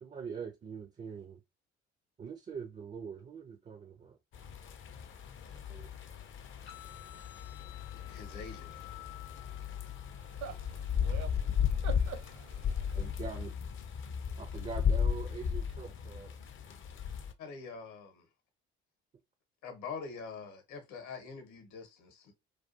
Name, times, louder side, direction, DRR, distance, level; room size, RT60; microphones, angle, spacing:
voice 1, 0.0-1.4 2.2-4.2 5.7-5.9 13.0-13.6 14.4-16.4, right 6 dB, 20° right, 0.4 m, -43 dB
sound 1, 4.3-17.3, left 7 dB, 40° left, 0.4 m, -35 dB
sound 2, 6.7-14.7, left 15 dB, 85° left, 0.6 m, -56 dB
voice 2, 8.1-8.7 17.4-18.2 19.6-22.3, left 5 dB, 60° left, 0.9 m, -44 dB
voice 3, 10.1-13.1, right 7 dB, 60° right, 0.6 m, -46 dB
2.4 x 2.3 x 2.4 m
hypercardioid pair, 50°, 33 cm